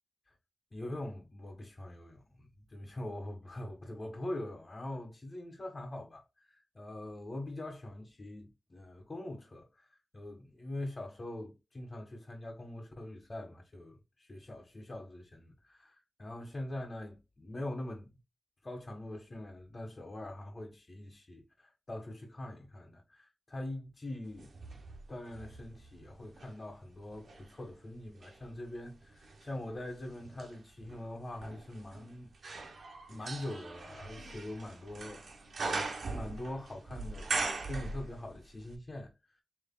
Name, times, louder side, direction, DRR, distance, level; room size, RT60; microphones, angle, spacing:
voice 1, 0.7-9.9 10.1-18.1 18.6-24.8 25.1-32.3 33.1-35.2 35.7-39.1, left 1 dB, 40° left, 1.4 m, -43 dB
sound 1, 24.4-26.6 27.1-38.5 38.7-38.8, right 3 dB, 90° right, 1.2 m, -41 dB
6.9 x 3.3 x 2.2 m
wide cardioid pair, 85°, 0 cm